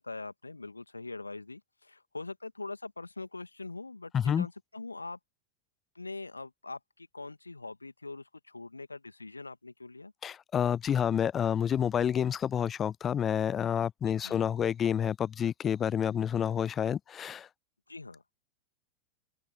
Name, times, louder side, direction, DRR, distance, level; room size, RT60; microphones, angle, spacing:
voice 1, 0.0-5.2 5.9-10.1 14.2-14.5 17.9-18.2, left 3 dB, 80° left, 2.2 m, -43 dB
voice 2, 4.1-4.5 10.2-17.5, left 8 dB, 25° left, 0.4 m, -29 dB
figure-of-eight pair, 90°, 0 cm